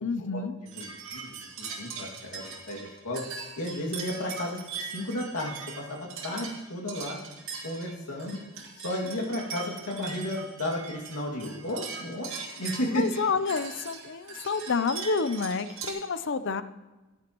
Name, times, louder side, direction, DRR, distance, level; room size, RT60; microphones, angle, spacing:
voice 1, 0.0-0.5 12.9-16.6, left 4 dB, 55° left, 13 dB, 0.6 m, -29 dB
voice 2, 0.7-3.2 3.6-7.2 7.6-8.4 8.8-12.3 12.6-13.2, left 1 dB, 85° left, -2 dB, 2.3 m, -33 dB
sound 1, 0.7-15.9, right 5 dB, 60° right, 2.4 m, -40 dB
15.0 x 11.0 x 3.0 m, 1.1 s
head